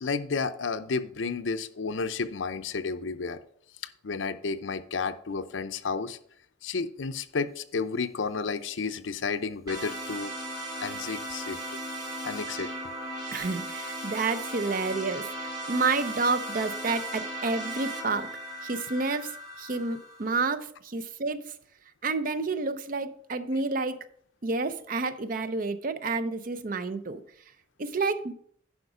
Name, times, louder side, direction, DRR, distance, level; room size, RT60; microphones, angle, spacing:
voice 1, 0.0-3.4 4.0-6.2 6.6-10.3 10.8-11.8 12.2-12.7, left 4 dB, 75° left, 11 dB, 0.6 m, -32 dB
sound 1, 9.7-20.5, right 1 dB, 25° right, 1.7 m, -37 dB
voice 2, 13.3-18.3 18.6-19.3 19.6-21.5 22.0-24.0 24.4-27.2 27.8-28.3, right 3 dB, 45° right, 13 dB, 0.5 m, -29 dB
11.0 x 5.0 x 4.9 m, 0.62 s
head